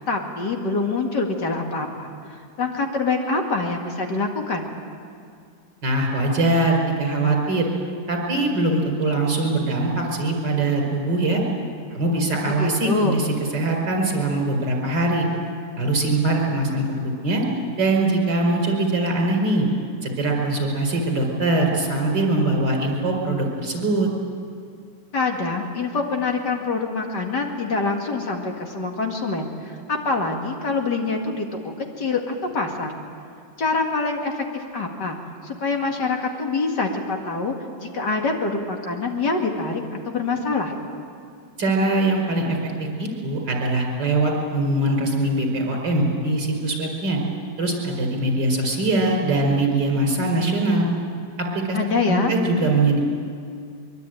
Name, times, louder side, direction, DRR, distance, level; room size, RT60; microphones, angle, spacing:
voice 1, 0.0-4.7 12.5-13.2 25.1-33.0 33.6-35.2 35.4-40.7 51.7-52.3, left 3 dB, 60° left, 2 dB, 2.7 m, -25 dB
voice 2, 5.8-7.7 8.1-11.4 11.9-13.3 13.5-15.3 15.8-17.4 17.8-19.7 20.0-24.1 41.6-42.7 43.0-47.2 47.6-50.9 51.4-51.8 52.1-53.0, right 2 dB, 60° right, 2 dB, 5.3 m, -22 dB
23.5 x 23.0 x 9.2 m, 2.3 s
omnidirectional pair, 2.1 m